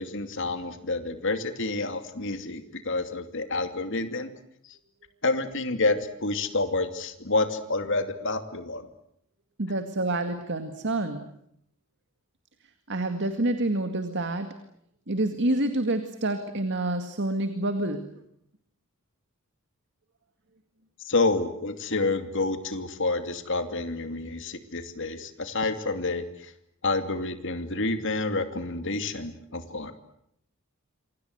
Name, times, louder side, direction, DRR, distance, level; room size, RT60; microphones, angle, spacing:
voice 1, 0.0-4.3 5.2-8.9 21.0-26.5 26.8-29.9, left 3 dB, 60° left, 8 dB, 2.6 m, -28 dB
voice 2, 9.6-11.2 12.9-14.5 15.1-18.1, right 2 dB, 55° right, 8 dB, 2.1 m, -28 dB
28.0 x 25.5 x 8.0 m, 0.74 s
head